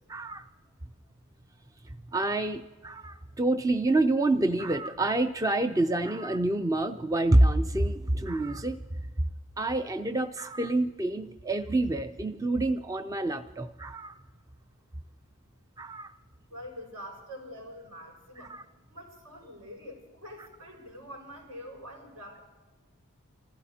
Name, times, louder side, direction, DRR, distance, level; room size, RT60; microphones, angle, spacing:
voice 1, 0.1-0.4 2.1-8.8 9.6-14.1 15.8-16.1 18.4-18.6, right 2 dB, 15° right, 7 dB, 0.4 m, -27 dB
voice 2, 16.5-18.5 18.9-22.4, equal, 80° right, -2 dB, 5.8 m, -45 dB
28.0 x 15.5 x 2.8 m, 1.3 s
head